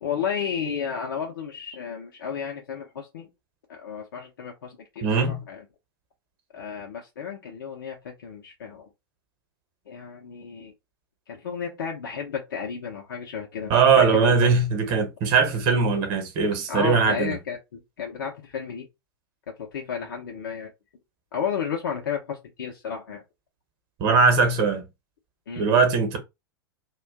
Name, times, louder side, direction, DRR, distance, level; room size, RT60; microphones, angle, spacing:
voice 1, 0.0-3.3 3.7-5.6 6.5-8.9 9.9-10.7 11.3-13.7 14.0-14.5 16.7-18.9 19.5-20.7 21.3-23.2 25.5-25.6, left 7 dB, 60° left, 0.6 m, -32 dB
voice 2, 5.0-5.4 13.7-17.4 24.0-24.9 25.6-26.2, right 5 dB, 40° right, 1.0 m, -20 dB
2.5 x 2.3 x 3.4 m
figure-of-eight pair, 90°, 12 cm